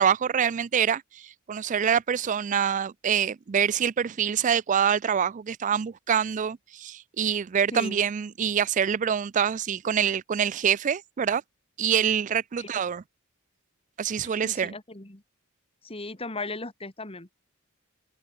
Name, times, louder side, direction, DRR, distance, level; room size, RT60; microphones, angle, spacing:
voice 1, 0.0-11.4 11.8-13.0 14.0-14.7, right 8 dB, 35° right, 0.3 m, -25 dB
voice 2, 14.2-15.2 15.8-17.3, left 2 dB, 25° left, 2.3 m, -37 dB
head